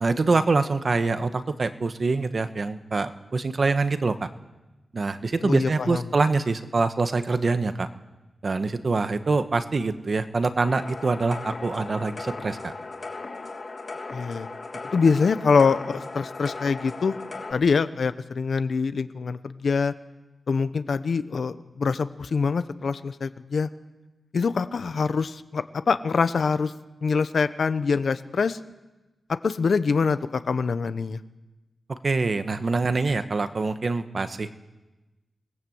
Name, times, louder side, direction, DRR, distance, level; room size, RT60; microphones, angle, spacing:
voice 1, 0.0-4.3 4.9-7.9 8.4-12.7 31.9-34.5, right 3 dB, 40° right, 9 dB, 1.2 m, -25 dB
voice 2, 5.4-6.0 14.1-14.5 14.9-19.9 20.5-23.7 24.3-26.7 27.0-28.6 29.4-31.2, left 5 dB, 60° left, 12 dB, 1.0 m, -24 dB
sound 1, 10.7-17.5, left 3 dB, 40° left, 3.1 m, -37 dB
27.0 x 19.5 x 7.9 m, 1.1 s
wide cardioid pair, 175°, 0 cm